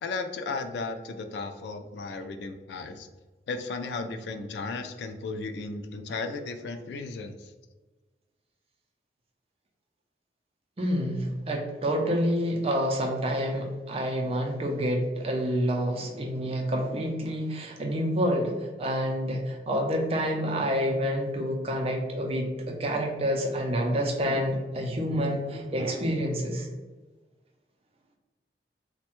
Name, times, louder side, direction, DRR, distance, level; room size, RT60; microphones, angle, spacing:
voice 1, 0.0-3.1 3.5-7.4, left 3 dB, 75° left, 8 dB, 0.3 m, -35 dB
voice 2, 10.8-26.7, equal, 35° right, 1 dB, 0.4 m, -28 dB
3.2 x 2.1 x 2.9 m, 1.3 s
head